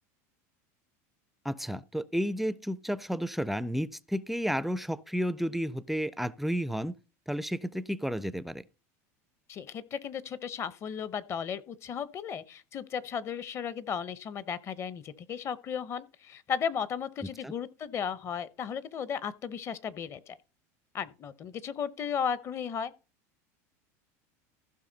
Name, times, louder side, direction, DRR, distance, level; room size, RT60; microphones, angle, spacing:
voice 1, 1.4-7.0 7.3-8.6 17.2-17.5, equal, ahead, 0.4 m, -32 dB
voice 2, 9.5-20.4 20.9-22.9, left 7 dB, 35° left, 0.8 m, -35 dB
15.0 x 5.8 x 3.9 m
supercardioid pair, 130°, 8 cm